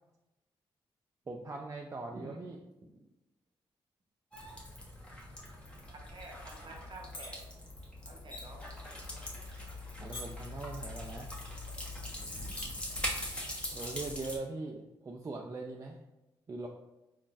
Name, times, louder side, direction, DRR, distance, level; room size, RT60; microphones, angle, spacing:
voice 1, 1.3-2.6 10.0-11.3 13.7-16.0 16.5-16.7, right 3 dB, 30° right, 0 dB, 0.3 m, -41 dB
sound 1, 4.3-14.4, left 1 dB, 10° left, 1.0 m, -42 dB
voice 2, 6.0-7.4 8.1-8.7, right 2 dB, 50° right, 1 dB, 0.8 m, -49 dB
sound 2, 7.1-7.4 7.8-8.1 8.7-8.9 9.6-9.9 10.1-10.6 11.4-11.5 11.7-11.8 12.4-12.7 13.0-13.3, left 2 dB, 60° left, 1.1 m, -44 dB
3.7 x 2.6 x 2.4 m, 1.0 s
cardioid pair, 60°, 10 cm